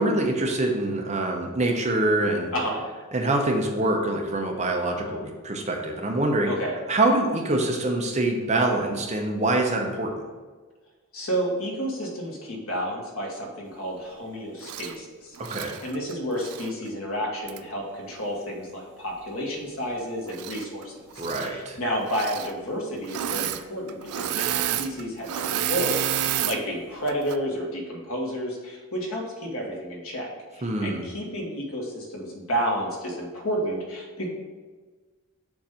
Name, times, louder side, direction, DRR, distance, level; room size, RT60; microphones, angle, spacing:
voice 1, 0.0-2.5 3.1-6.5 6.9-10.1 15.4-15.7 21.2-21.8 30.6-31.0, right 2 dB, 30° right, 2 dB, 0.6 m, -25 dB
voice 2, 2.5-2.8 6.5-6.8 11.1-30.3 30.5-34.3, equal, 75° left, -1 dB, 1.3 m, -31 dB
Engine / Mechanisms, 14.6-14.9 15.4-16.7 17.5-17.6 20.3-20.8 21.1-21.5 22.1-22.5 23.0-23.6 23.9-26.6 27.1-27.4, right 11 dB, 90° right, 0.3 m, -29 dB
7.0 x 2.6 x 5.6 m, 1.4 s
head